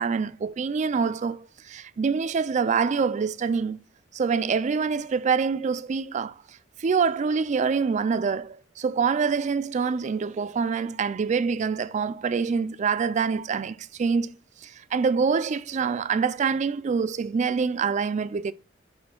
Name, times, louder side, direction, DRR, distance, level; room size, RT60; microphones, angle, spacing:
voice 1, 0.0-3.8 4.1-6.4 6.8-14.3 14.6-18.5, right 5 dB, 40° right, 0.3 m, -25 dB
10.5 x 4.3 x 2.3 m
head